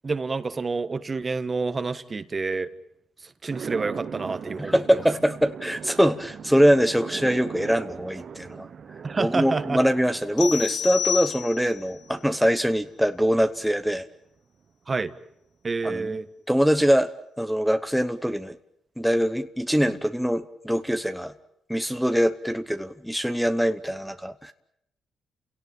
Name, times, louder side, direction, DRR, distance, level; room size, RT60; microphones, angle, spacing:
voice 1, 0.0-2.7 3.4-5.0 9.0-9.8 14.9-15.1 15.6-16.3, right 4 dB, 30° right, 13 dB, 1.4 m, -28 dB
sound 1, 3.5-13.9, right 7 dB, 50° right, 1.0 m, -40 dB
voice 2, 4.6-8.7 9.2-14.1 15.8-16.2 16.5-17.1 17.4-18.6 19.0-21.3 21.7-24.5, equal, ahead, 8 dB, 1.0 m, -23 dB
sound 2, 10.4-11.9, left 9 dB, 70° left, 2.2 m, -29 dB
30.0 x 17.5 x 8.9 m, 0.78 s
cardioid pair, 90°, 0 cm